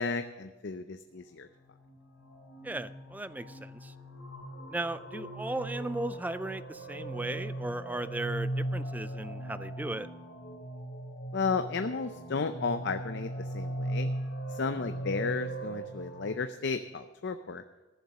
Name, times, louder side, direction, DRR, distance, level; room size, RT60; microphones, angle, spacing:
voice 1, 0.0-1.5 11.3-14.1 14.5-17.6, left 4 dB, 60° left, 9 dB, 0.5 m, -33 dB
sound 1, 1.6-16.3, right 1 dB, 85° left, 2.5 m, -38 dB
voice 2, 2.6-3.9 4.7-10.1, right 2 dB, 10° right, 13 dB, 0.4 m, -36 dB
sound 2, 4.1-9.8, left 2 dB, 35° right, 4.0 m, -56 dB
14.5 x 7.1 x 6.5 m, 1.2 s
head